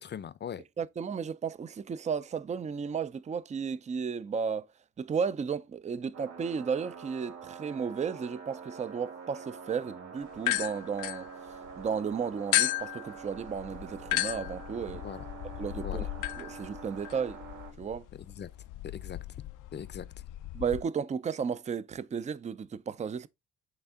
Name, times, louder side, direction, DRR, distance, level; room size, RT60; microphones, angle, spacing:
voice 1, 0.0-0.6 14.9-15.3 15.8-16.1 18.1-18.5 18.8-19.2 19.7-20.1, left 8 dB, 35° left, 0.6 m, -41 dB
voice 2, 0.8-4.7 5.0-15.0 15.6-16.1 16.4-17.4 17.8-18.1 20.5-23.3, right 6 dB, 25° right, 0.4 m, -34 dB
sound 1, 6.1-17.7, right 5 dB, 65° right, 4.9 m, -46 dB
sound 2, 10.4-11.9 12.5-20.8, left 17 dB, 85° left, 0.5 m, -35 dB
8.3 x 3.5 x 3.6 m
cardioid pair, 90°, 30 cm